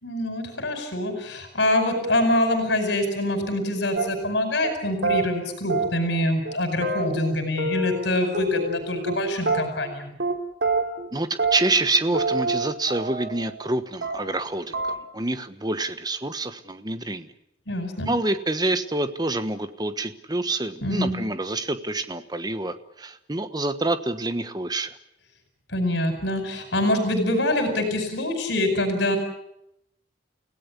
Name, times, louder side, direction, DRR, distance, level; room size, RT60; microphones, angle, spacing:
voice 1, 0.0-10.2 17.7-18.1 20.8-21.2 25.7-29.2, left 1 dB, 70° left, 7 dB, 5.1 m, -25 dB
sound 1, 4.0-4.3 4.6-4.7 5.0-5.2 5.7-6.2 6.5-6.6 6.8-8.1 8.3-9.2 9.5-9.9 10.2-10.4 10.6-11.1 11.4-11.9 12.1-13.7 14.0-14.4 14.7-15.0, right 3 dB, 65° right, 3.1 m, -27 dB
voice 2, 11.1-17.3 18.1-24.9, right 2 dB, 20° right, 10 dB, 1.3 m, -27 dB
29.5 x 17.0 x 8.3 m, 0.81 s
head